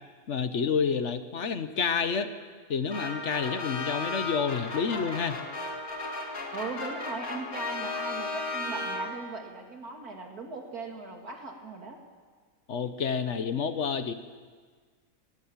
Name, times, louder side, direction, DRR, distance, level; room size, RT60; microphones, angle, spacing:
voice 1, 0.3-2.3 2.7-5.4 12.7-14.1, left 6 dB, 55° left, 10 dB, 1.2 m, -29 dB
sound 1, 2.9-9.4, left 2 dB, 75° left, 2.6 m, -35 dB
voice 2, 6.5-12.0, right 3 dB, 80° right, 2 dB, 3.1 m, -39 dB
19.5 x 18.5 x 7.3 m, 1.6 s
omnidirectional pair, 1.6 m